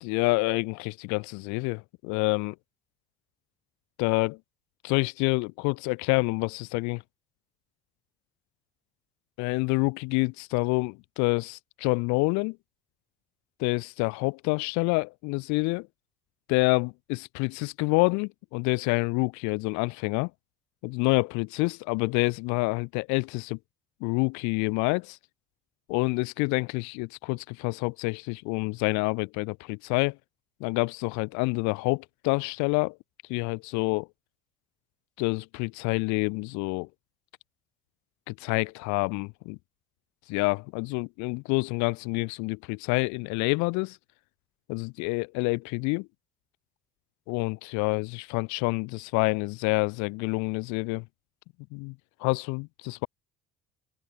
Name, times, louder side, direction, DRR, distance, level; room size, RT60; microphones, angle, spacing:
voice 1, 0.0-2.6 4.0-4.4 4.8-7.0 9.4-12.6 13.6-15.9 16.5-20.3 20.8-23.6 24.0-25.2 25.9-30.2 30.6-33.0 33.3-34.1 35.2-36.9 38.3-39.6 40.3-44.0 44.7-46.1 47.3-51.1 51.7-53.1, left 28 dB, 65° left, 0.6 m, -27 dB
hypercardioid pair, 60°, 32 cm